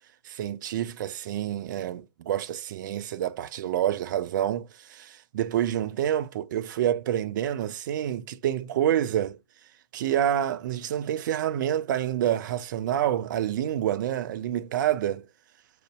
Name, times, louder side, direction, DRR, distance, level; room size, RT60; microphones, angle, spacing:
voice 1, 0.2-9.4 9.9-15.2, right 11 dB, 45° right, 0.4 m, -28 dB
6.1 x 2.5 x 2.2 m
figure-of-eight pair, 120°, 15 cm